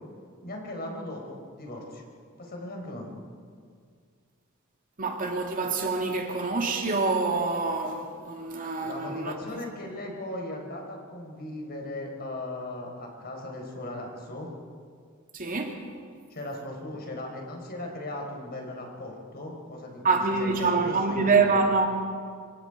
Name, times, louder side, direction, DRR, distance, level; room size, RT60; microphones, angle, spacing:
voice 1, 0.4-2.0 2.4-3.1 8.8-14.5 16.3-21.6, left 1 dB, 45° left, 4.6 m, -38 dB
voice 2, 5.0-9.6 15.3-15.7 20.0-21.9, right 4 dB, 40° right, 2.3 m, -26 dB
27.0 x 25.0 x 5.0 m
head